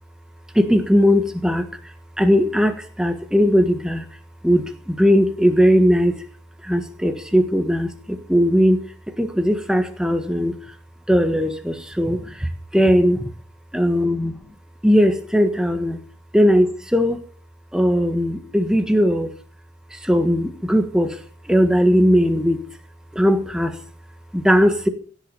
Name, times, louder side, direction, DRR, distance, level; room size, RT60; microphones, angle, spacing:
voice 1, 0.5-1.7 2.2-4.0 4.4-6.2 6.6-8.8 9.2-10.5 11.1-13.2 13.7-14.4 14.8-16.0 16.3-17.2 17.7-19.3 19.9-21.1 21.5-22.6 23.1-23.7 24.3-24.9, equal, 5° right, 6 dB, 1.6 m, -18 dB
16.5 x 8.2 x 7.0 m, 0.43 s
head